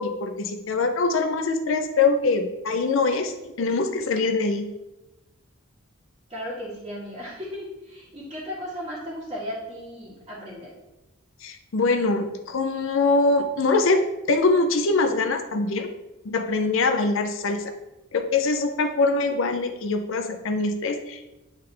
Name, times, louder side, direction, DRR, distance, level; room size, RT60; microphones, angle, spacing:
voice 1, 0.0-4.7 11.4-15.9 16.2-17.7 18.1-21.2, left 3 dB, 65° left, 7 dB, 0.5 m, -23 dB
voice 2, 6.3-10.7, equal, 25° right, -11 dB, 1.5 m, -35 dB
8.7 x 3.7 x 3.3 m, 0.99 s
head